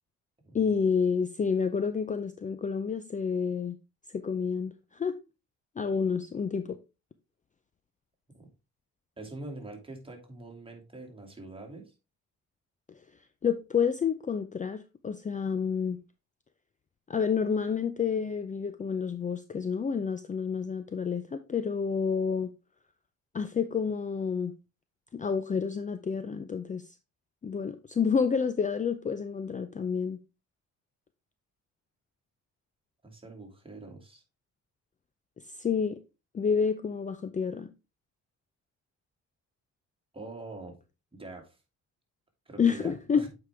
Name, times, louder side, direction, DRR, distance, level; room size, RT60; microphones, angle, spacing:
voice 1, 0.5-3.8 4.1-5.2 5.8-6.8 13.4-16.0 17.1-22.5 23.3-24.5 25.1-26.8 27.4-30.2 35.6-36.0 36.3-37.7 42.6-43.2, left 6 dB, 25° left, 0.5 m, -29 dB
voice 2, 9.2-11.9 33.0-34.2 40.1-40.8 41.1-41.6 42.5-43.3, right 2 dB, 15° right, 2.5 m, -44 dB
8.1 x 4.9 x 3.5 m
cardioid pair, 90°, 30 cm